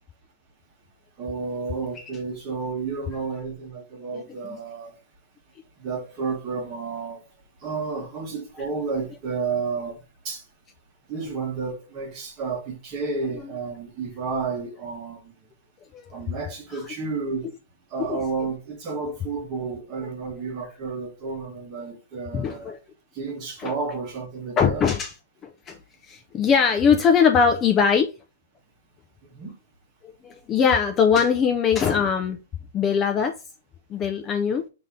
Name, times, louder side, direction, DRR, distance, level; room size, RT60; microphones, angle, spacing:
voice 1, 1.2-5.0 5.8-7.2 7.6-10.4 11.1-15.3 16.1-17.5 17.9-22.8 23.1-24.8 29.3-29.5, right 4 dB, 20° right, 0.9 m, -31 dB
voice 2, 4.1-4.6 15.9-16.1 18.0-18.2 22.3-22.8 23.6-23.7 24.6-25.1 25.4-25.8 26.0-28.1 30.2-32.4 32.7-33.4 33.9-34.6, left 6 dB, 15° left, 0.3 m, -21 dB
5.5 x 2.6 x 3.4 m
hypercardioid pair, 180°, 0 cm